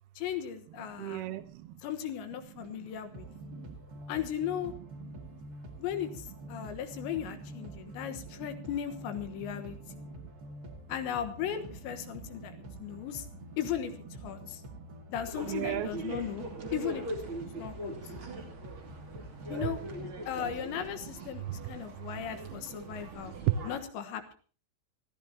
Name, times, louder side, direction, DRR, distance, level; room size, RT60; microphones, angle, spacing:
voice 1, 0.2-1.3 1.8-3.3 4.1-4.7 5.8-9.8 10.9-12.5 12.8-13.3 13.6-13.9 14.2-14.6 15.1-16.4 16.7-17.0 17.6-17.9 19.5-19.8 20.3-23.3 23.6-24.4, left 9 dB, 75° left, 8 dB, 3.4 m, -36 dB
voice 2, 0.9-1.8 2.3-3.8 5.0-5.1 6.5-6.7 7.2-7.3 7.7-8.7 9.4-10.1 12.1-13.0 14.4-14.9 15.4-16.6 17.4-17.6 18.1-18.4 19.6-19.7 20.0-20.1 21.0-23.5, right 16 dB, 85° right, 11 dB, 2.2 m, -40 dB
sound 1, 2.6-20.1, equal, 60° right, 0.9 m, -47 dB
sound 2, 15.3-23.8, right 2 dB, 35° right, 2.6 m, -41 dB
24.5 x 14.0 x 2.8 m, 0.40 s
omnidirectional pair, 5.5 m